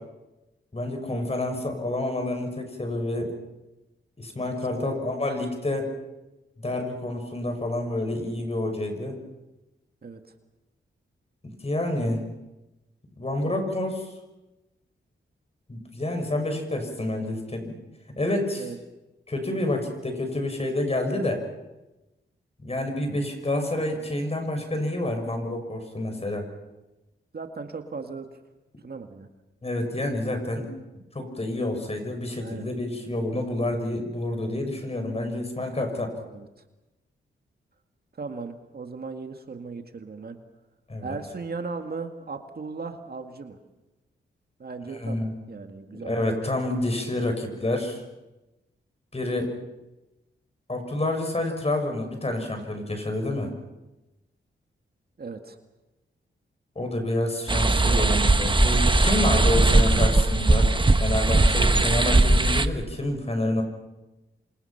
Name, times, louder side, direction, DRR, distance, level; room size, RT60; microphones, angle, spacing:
voice 1, 0.7-3.4 4.2-5.9 6.6-9.2 11.4-12.2 13.2-14.1 15.7-17.7 18.2-18.7 19.3-21.4 22.6-26.4 29.6-30.7 31.1-36.1 40.9-41.2 44.9-45.3 45.9-48.0 49.1-49.5 50.7-53.5 56.7-60.7 61.0-63.6, left 1 dB, 30° left, 5 dB, 6.6 m, -28 dB
voice 2, 27.3-28.3 28.8-29.3 32.4-32.7 36.3-36.5 38.2-40.4 41.0-43.6 44.6-46.1 55.2-55.6 57.6-58.3, right 4 dB, 50° right, 5 dB, 2.2 m, -37 dB
sound 1, 57.5-62.7, right 2 dB, 25° right, 1.2 m, -20 dB
sound 2, 58.5-59.1 59.5-63.0, equal, 5° left, 4.2 m, -26 dB
28.0 x 26.5 x 6.0 m, 1.0 s
cardioid pair, 75°, 21 cm